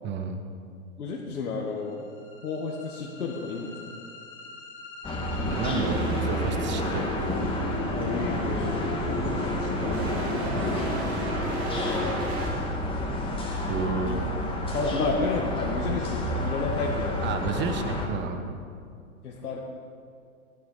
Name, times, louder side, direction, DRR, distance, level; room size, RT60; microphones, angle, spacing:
voice 1, 0.0-0.4 5.6-7.1 13.7-14.1 17.2-18.6, right 5 dB, 25° right, 7 dB, 1.5 m, -31 dB
voice 2, 1.0-2.0 2.4-3.9 7.9-8.7 9.0-10.6 14.1-14.3 14.7-17.8 19.2-19.6, left 3 dB, 80° left, -2 dB, 2.0 m, -32 dB
sound 1, 1.8-13.9, left 4 dB, 25° left, 2.5 m, -40 dB
sound 2, 5.0-18.1, left 1 dB, 10° left, 2.1 m, -30 dB
sound 3, 5.5-12.5, right 3 dB, 55° right, 4.9 m, -36 dB
18.0 x 12.0 x 5.7 m, 2.4 s
hypercardioid pair, 120°, 44 cm